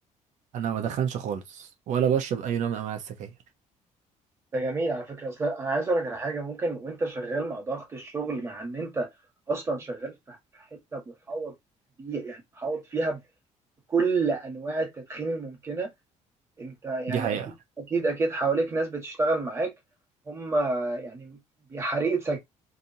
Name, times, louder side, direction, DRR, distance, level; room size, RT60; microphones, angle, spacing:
voice 1, 0.5-3.3 17.1-17.5, right 8 dB, 70° right, 1.1 m, -28 dB
voice 2, 4.5-9.1 9.5-10.4 10.9-11.5 12.0-13.2 13.9-15.9 16.6-17.4 17.8-19.7 20.3-21.4 21.7-22.4, right 3 dB, 20° right, 1.6 m, -29 dB
4.1 x 3.5 x 2.8 m
cardioid pair, 170°, 13 cm